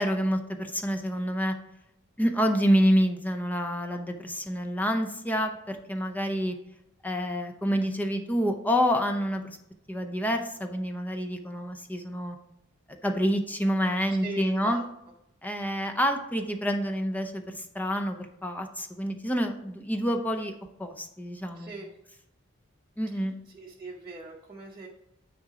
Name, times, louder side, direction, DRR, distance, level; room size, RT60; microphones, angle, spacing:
voice 1, 0.0-1.5 2.2-6.6 7.0-9.6 9.9-12.4 12.9-14.8 15.4-20.5 20.8-21.7 23.0-23.3, equal, 10° left, 5 dB, 0.6 m, -28 dB
voice 2, 14.1-14.8 21.5-21.9 23.5-24.9, right 3 dB, 20° right, -3 dB, 0.9 m, -40 dB
9.4 x 3.8 x 4.8 m, 0.83 s
head